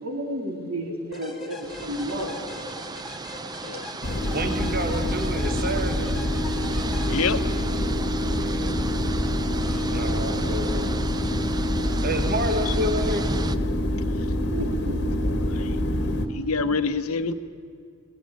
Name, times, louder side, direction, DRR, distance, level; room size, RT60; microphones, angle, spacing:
voice 1, 0.0-2.3 14.5-15.0, equal, 70° right, 2 dB, 4.0 m, -31 dB
sound 1, 1.1-8.0, left 2 dB, ahead, 2.6 m, -42 dB
sound 2, 1.6-13.6, right 3 dB, 20° right, 0.6 m, -36 dB
sound 3, 4.0-16.3, left 1 dB, 50° left, 1.4 m, -26 dB
voice 2, 4.3-6.1 8.2-8.7 9.8-10.9 12.0-13.3, right 1 dB, 40° right, 7 dB, 1.5 m, -29 dB
voice 3, 7.1-7.4 12.7-12.8 15.2-15.3 15.6-15.7 16.3-17.3, left 4 dB, 75° left, 11 dB, 1.0 m, -26 dB
22.0 x 18.5 x 8.8 m, 2.3 s
head